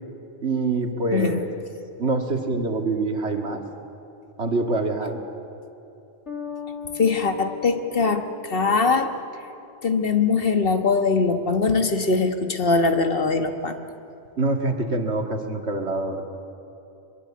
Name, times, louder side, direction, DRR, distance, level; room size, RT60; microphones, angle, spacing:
voice 1, 0.4-1.5 2.0-3.6 4.4-5.2 14.4-16.2, right 3 dB, 75° right, 4 dB, 2.3 m, -25 dB
Bass guitar, 6.3-9.8, left 8 dB, 85° left, 2.3 m, -39 dB
voice 2, 7.0-9.1 9.8-13.8, left 4 dB, 55° left, 7 dB, 1.6 m, -22 dB
23.0 x 22.0 x 8.6 m, 2.8 s
omnidirectional pair, 1.2 m